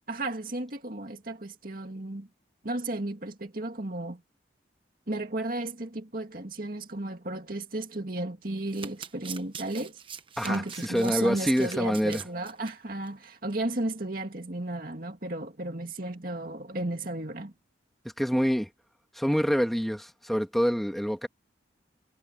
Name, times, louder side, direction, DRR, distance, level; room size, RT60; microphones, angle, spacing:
voice 1, 0.1-2.3 2.6-4.2 5.1-10.0 10.4-17.5, right 2 dB, 50° right, 2.3 m, -34 dB
Domestic sounds home sounds, 8.6-12.7 13.1-13.3 13.5-13.6, right 7 dB, 30° right, 1.1 m, -43 dB
voice 2, 10.4-12.2 18.2-18.7 19.1-21.3, equal, ahead, 2.3 m, -26 dB
head